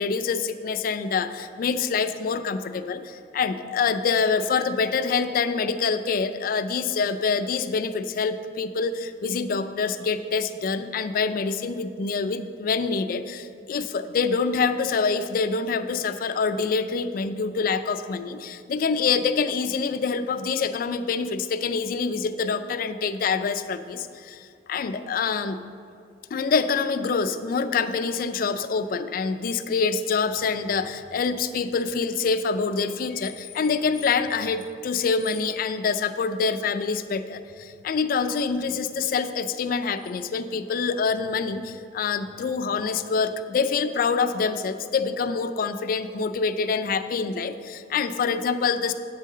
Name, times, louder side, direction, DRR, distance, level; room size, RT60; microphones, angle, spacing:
voice 1, 0.0-25.6 26.3-48.9, left 5 dB, 50° left, 10 dB, 0.3 m, -26 dB
8.3 x 6.5 x 3.7 m, 2.4 s
head